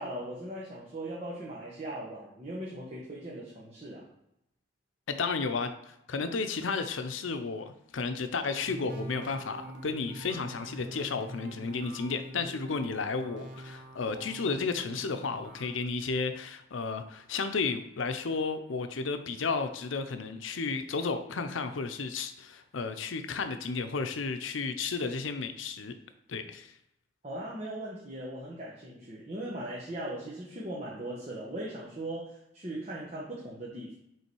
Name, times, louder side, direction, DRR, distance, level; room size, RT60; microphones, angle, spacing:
voice 1, 0.0-4.1 27.2-34.0, right 1 dB, 35° right, -6 dB, 1.1 m, -39 dB
voice 2, 5.1-25.9 26.3-26.7, left 4 dB, 85° left, 9 dB, 0.6 m, -33 dB
sound 1, 8.7-15.8, right 1 dB, 60° right, 1.1 m, -45 dB
5.5 x 3.8 x 4.6 m, 0.82 s
head